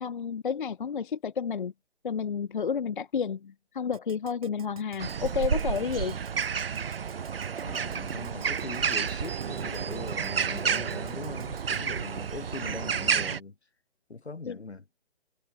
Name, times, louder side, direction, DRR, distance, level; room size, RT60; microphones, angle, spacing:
voice 1, 0.0-1.7 2.0-6.2 14.5-14.6, left 6 dB, 50° left, 0.4 m, -31 dB
Keyboard (musical), 3.9-11.8, right 9 dB, 35° right, 4.0 m, -50 dB
sound 1, 5.0-13.4, right 7 dB, 60° right, 0.7 m, -30 dB
voice 2, 7.6-13.6 14.1-14.8, left 3 dB, 80° left, 2.7 m, -41 dB
figure-of-eight pair, 155°, 33 cm